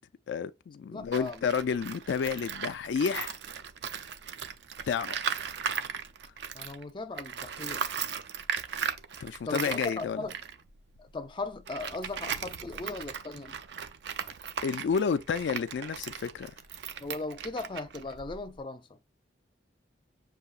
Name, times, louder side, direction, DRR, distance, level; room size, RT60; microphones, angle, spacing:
voice 1, 0.3-3.4 4.9-5.2 9.2-10.2 14.6-16.5, left 6 dB, 90° left, 0.4 m, -30 dB
voice 2, 0.9-1.4 6.5-7.8 9.4-10.4 11.0-13.6 17.0-19.0, left 3 dB, 25° left, 0.5 m, -38 dB
Tools, 1.0-6.8 7.1-18.6, right 7 dB, 75° right, 0.5 m, -37 dB
6.7 x 2.8 x 2.4 m
head